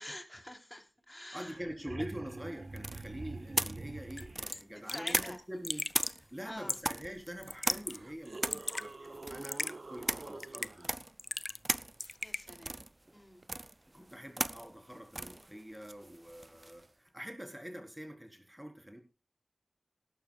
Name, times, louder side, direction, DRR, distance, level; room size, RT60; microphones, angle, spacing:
voice 1, 0.0-1.9 4.7-5.4 6.4-6.8 12.2-12.8 13.1-13.4, left 1 dB, 15° left, 5 dB, 3.4 m, -48 dB
Orc Growl with Raw recording, 1.2-1.3 1.4-4.5 7.0-7.1 7.8-10.9 13.4-13.5, right 3 dB, 60° right, 0.9 m, -46 dB
voice 2, 1.3-11.0 13.9-19.0, equal, 10° right, 4 dB, 4.2 m, -45 dB
sound 1, 2.8-5.6 5.9-16.9, right 1 dB, 30° right, 0.6 m, -38 dB
Raindrop / Drip, 4.2-4.3 4.5-4.6 4.9-5.3 5.6-6.2 6.7-7.0 7.4-8.0 8.3-8.9 9.4-9.7 10.4-10.8 11.2-11.7 12.0-12.4, left 2 dB, 35° left, 0.6 m, -37 dB
18.5 x 12.0 x 2.4 m, 0.29 s
wide cardioid pair, 55°, 0 cm